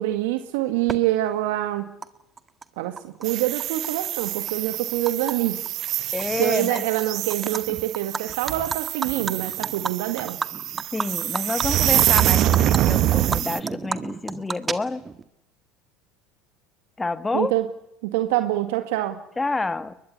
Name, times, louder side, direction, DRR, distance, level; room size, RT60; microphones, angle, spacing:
voice 1, 0.0-1.9 2.8-5.6 6.4-10.4 17.3-17.7 18.0-19.2, right 15 dB, 75° right, 8 dB, 1.9 m, -25 dB
Animal, 0.9-1.0 2.0-2.1 2.4-3.3 3.6-5.3 5.7-5.9 6.2-7.0 7.3-7.6 7.9-12.3 12.5-12.8 13.1-15.2, right 5 dB, 25° right, 1.9 m, -31 dB
sound 1, 3.2-13.6, right 13 dB, 55° right, 1.1 m, -25 dB
voice 2, 6.1-6.8 10.9-15.0 17.0-17.5 19.4-19.9, left 3 dB, 15° left, 13 dB, 1.8 m, -28 dB
22.5 x 20.5 x 9.8 m, 0.80 s
hypercardioid pair, 85°, 0 cm